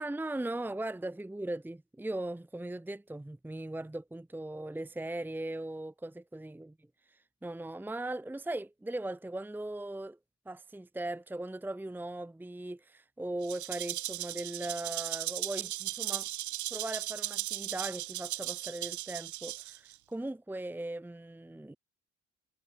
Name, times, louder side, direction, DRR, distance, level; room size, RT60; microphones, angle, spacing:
voice 1, 0.0-6.7 7.1-10.2 10.5-16.3 16.7-21.8, right 1 dB, 5° right, 0.9 m, -39 dB
Rattle (instrument), 13.4-19.9, right 15 dB, 75° right, 0.9 m, -37 dB
cardioid pair, 90°, 30 cm